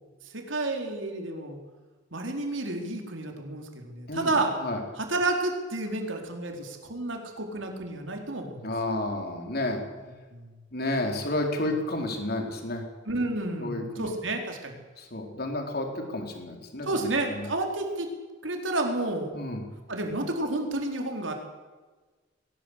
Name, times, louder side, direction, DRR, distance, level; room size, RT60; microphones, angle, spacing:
voice 1, 0.3-1.6 2.1-4.5 5.0-8.6 10.0-10.5 11.7-11.8 13.0-14.8 16.8-18.1 18.4-19.3 19.9-21.3, right 2 dB, 80° right, 3 dB, 4.5 m, -30 dB
voice 2, 8.6-9.8 10.7-12.9 13.6-14.1 15.0-16.9 17.3-17.5 19.3-19.7, left 1 dB, 55° left, 3 dB, 4.6 m, -31 dB
22.0 x 19.0 x 8.5 m, 1.3 s
head